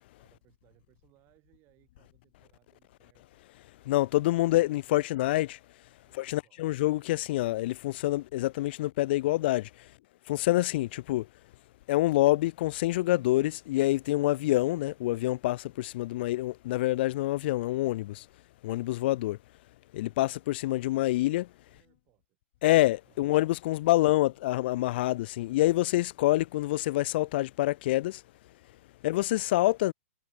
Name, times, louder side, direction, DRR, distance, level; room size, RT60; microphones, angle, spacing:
voice 1, 0.2-3.9 4.6-5.5 6.0-6.6 21.7-22.7 23.0-23.3 23.7-24.4, right 20 dB, 30° right, 6.6 m, -67 dB
voice 2, 3.8-5.6 6.1-9.9 10.3-11.3 11.9-18.3 18.6-19.4 19.9-21.5 22.6-28.2 29.0-29.9, left 17 dB, 50° left, 0.4 m, -26 dB
hypercardioid pair, 135°, 7 cm